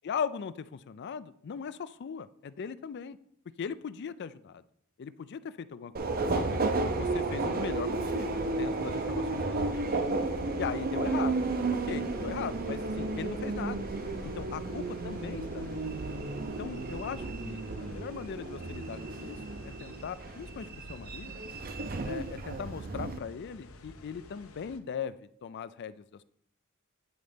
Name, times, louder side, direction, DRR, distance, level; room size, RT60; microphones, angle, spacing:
voice 1, 0.0-3.2 3.6-4.6 5.0-6.4 6.9-9.4 9.8-10.0 10.6-11.4 11.9-13.9 14.2-15.9 16.6-19.4 19.6-21.4 22.0-26.2, left 6 dB, 50° left, 15 dB, 0.4 m, -39 dB
Subway metro underground, 5.9-23.2, right 3 dB, 45° right, 0.6 m, -33 dB
sound 1, 6.3-24.8, left 2 dB, 75° left, 0.8 m, -51 dB
9.5 x 4.1 x 5.1 m, 0.68 s
head